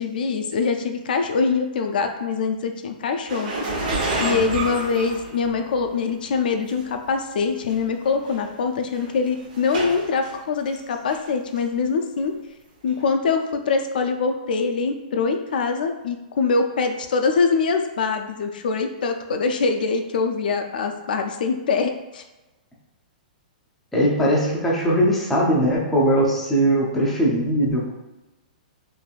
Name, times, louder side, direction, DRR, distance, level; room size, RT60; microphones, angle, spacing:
voice 1, 0.0-3.5 4.2-12.3 12.8-22.2, left 5 dB, 75° left, 5 dB, 0.3 m, -23 dB
sound 1, 3.3-5.9 6.7-6.8 7.7-7.8 8.0-8.4 8.9-10.3 10.7-11.3 11.6-11.7 12.9-13.0, right 2 dB, 65° right, 0.8 m, -28 dB
voice 2, 23.9-27.9, equal, 5° left, -6 dB, 0.4 m, -20 dB
3.2 x 2.5 x 2.3 m, 1.0 s
hypercardioid pair, 165°, 5 cm